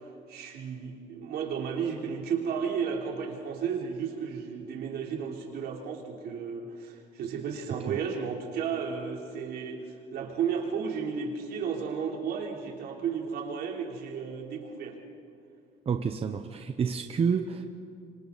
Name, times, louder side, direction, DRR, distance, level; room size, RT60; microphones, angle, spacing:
voice 1, 0.3-9.8 10.1-15.0, right 6 dB, 70° right, 0 dB, 3.6 m, -33 dB
voice 2, 15.9-17.7, right 6 dB, 35° right, 6 dB, 1.0 m, -29 dB
26.0 x 26.0 x 4.2 m, 2.4 s
cardioid pair, 110°, 17 cm